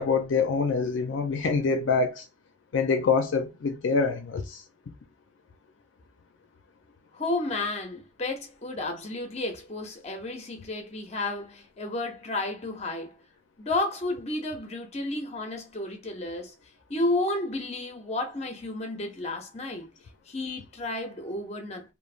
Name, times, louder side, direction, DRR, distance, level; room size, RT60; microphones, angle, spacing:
voice 1, 0.0-2.2 2.7-4.6, left 4 dB, 70° left, 0.4 m, -25 dB
voice 2, 7.1-13.1 13.6-16.5 16.9-19.9 20.3-21.9, left 2 dB, 35° left, 0.6 m, -32 dB
3.1 x 2.0 x 2.4 m
head